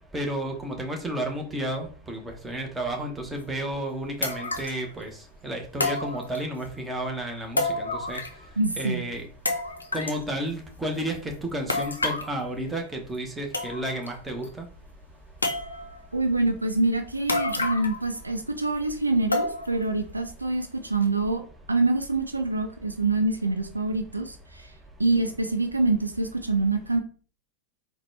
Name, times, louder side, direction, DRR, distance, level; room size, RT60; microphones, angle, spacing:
voice 1, 0.1-5.1 5.4-8.2 8.8-9.3 9.9-14.7, right 1 dB, 10° right, 0.8 m, -32 dB
sound 1, 3.4-3.5 4.2-4.8 5.8-6.7 7.6-8.5 8.8-8.9 9.5-10.2 11.7-12.3 13.1-13.2 13.5-14.1 14.4-14.5 15.4-16.0 17.3-18.1 18.4-18.5 19.3-19.8 20.3-20.4 21.0-21.1, left 2 dB, 80° left, 0.4 m, -29 dB
voice 2, 8.6-9.0 16.1-24.7 25.0-27.0, right 2 dB, 80° right, 0.4 m, -25 dB
4.0 x 2.2 x 3.1 m
figure-of-eight pair, 90°, 0 cm